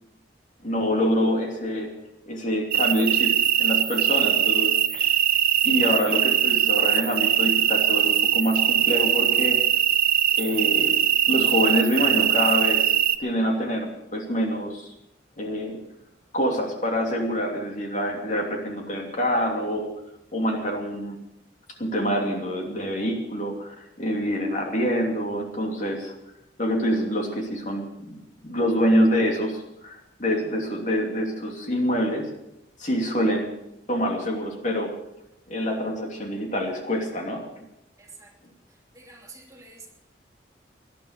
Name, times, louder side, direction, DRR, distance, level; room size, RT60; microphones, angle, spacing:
voice 1, 0.6-1.9 2.3-5.1 5.6-9.6 10.4-10.9 11.3-12.9 13.2-14.9 15.4-15.8 16.3-19.9 20.3-21.2 21.8-26.1 26.6-28.2 28.4-32.3 32.8-33.5 33.9-34.9 35.5-37.4, equal, 45° left, 1 dB, 2.8 m, -26 dB
sound 1, 2.7-13.2, right 11 dB, 55° right, 0.8 m, -21 dB
voice 2, 38.0-38.3 38.9-39.9, right 3 dB, 20° right, 0 dB, 2.8 m, -47 dB
19.0 x 11.0 x 6.7 m, 0.86 s
head